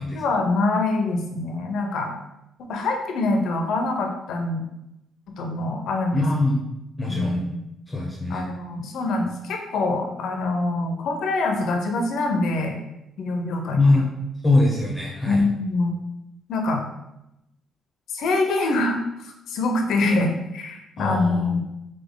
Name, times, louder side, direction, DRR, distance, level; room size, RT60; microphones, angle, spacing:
voice 1, 0.1-2.1 2.6-4.7 5.4-6.3 7.1-7.6 8.3-12.8 13.2-13.8 15.3-15.9 16.5-16.8 18.1-21.6, left 2 dB, 75° left, 3 dB, 0.7 m, -24 dB
voice 2, 6.1-6.6 7.0-7.4 7.9-8.5 13.8-14.1 14.4-15.4 21.0-21.5, left 2 dB, 20° left, -3 dB, 0.9 m, -22 dB
4.0 x 3.2 x 3.7 m, 0.86 s
cardioid pair, 90°, 0 cm